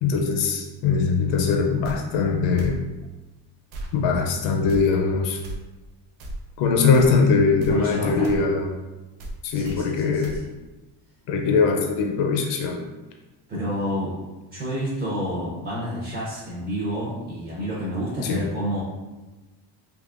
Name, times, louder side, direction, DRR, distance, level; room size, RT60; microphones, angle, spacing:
voice 1, 0.0-2.8 3.9-5.4 6.6-8.7 9.4-10.3 11.3-12.8 18.2-18.4, left 4 dB, 70° left, 1 dB, 0.5 m, -21 dB
sound 1, 1.8-2.0 2.6-2.8 3.7-3.9 4.7-4.8 5.4-5.6 6.2-6.4 6.9-7.1 7.6-7.8 8.2-8.4 9.2-9.4 9.6-9.8 10.2-10.4, right 1 dB, 85° right, 0.7 m, -34 dB
voice 2, 7.7-8.4 9.5-10.5 13.5-14.1 14.5-18.8, equal, 20° right, -8 dB, 0.5 m, -29 dB
3.5 x 2.8 x 2.4 m, 1.2 s
cardioid pair, 175°, 46 cm